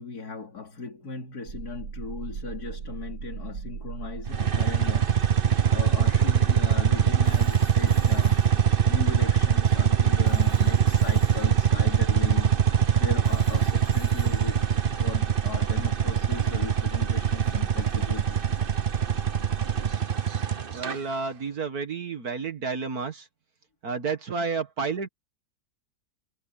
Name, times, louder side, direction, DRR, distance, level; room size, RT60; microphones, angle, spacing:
voice 1, 0.0-5.1 5.7-8.4 8.9-12.6 13.0-18.4 20.1-20.2 20.4-20.6, left 4 dB, 70° left, 3.3 m, -37 dB
sound 1, 1.5-20.0, right 6 dB, 80° right, 1.9 m, -38 dB
sound 2, 4.3-21.0, right 8 dB, 40° right, 1.0 m, -23 dB
Telephone, 7.2-10.0 10.3-15.5, left 2 dB, 35° left, 8.1 m, -53 dB
voice 2, 20.7-23.3 23.8-25.1, right 5 dB, 65° right, 2.1 m, -30 dB
omnidirectional pair, 1.7 m